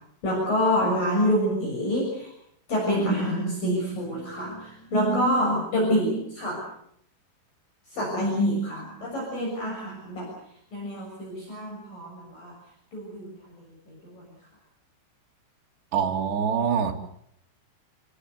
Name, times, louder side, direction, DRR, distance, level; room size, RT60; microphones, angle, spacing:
voice 1, 0.2-2.3 2.7-6.6 7.9-10.3 10.7-12.5 12.9-13.5 13.9-14.2, equal, 45° left, -2 dB, 8.2 m, -26 dB
voice 2, 15.9-16.9, right 7 dB, 65° right, 2 dB, 4.7 m, -24 dB
30.0 x 18.5 x 8.1 m, 0.71 s
omnidirectional pair, 5.4 m